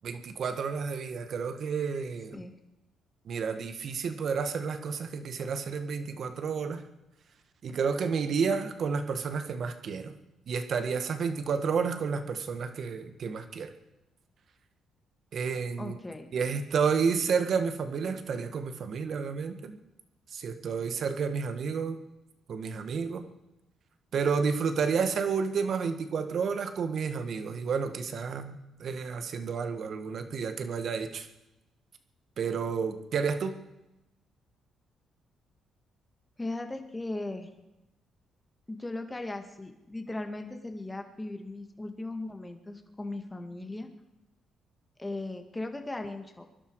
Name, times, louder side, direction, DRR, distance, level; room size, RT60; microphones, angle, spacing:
voice 1, 0.0-2.4 3.2-6.8 7.6-10.1 10.5-13.7 15.3-16.0 16.3-19.7 20.3-22.0 22.5-23.3 24.1-31.3 32.4-33.6, right 5 dB, 60° right, 8 dB, 1.7 m, -30 dB
voice 2, 15.8-16.3 36.4-37.5 38.7-43.9 45.0-46.5, left 2 dB, 15° left, 6 dB, 2.1 m, -38 dB
23.5 x 12.0 x 4.9 m, 0.93 s
cardioid pair, 90°, 0 cm